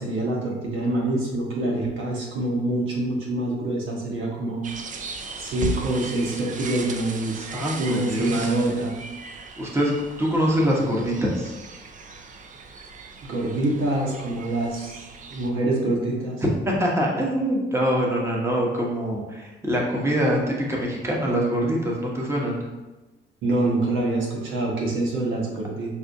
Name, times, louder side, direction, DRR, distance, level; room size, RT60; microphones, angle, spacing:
voice 1, 0.0-4.6 5.4-7.5 7.8-8.9 13.3-16.4 23.4-26.0, right 2 dB, 80° right, -2 dB, 1.0 m, -26 dB
sound 1, 4.6-15.5, right 4 dB, 40° right, 0.4 m, -37 dB
voice 2, 7.5-8.5 9.6-9.9 10.2-11.5 16.4-22.7, equal, 15° right, -3 dB, 0.9 m, -24 dB
5.7 x 2.4 x 2.6 m, 1.1 s
cardioid pair, 90°, 20 cm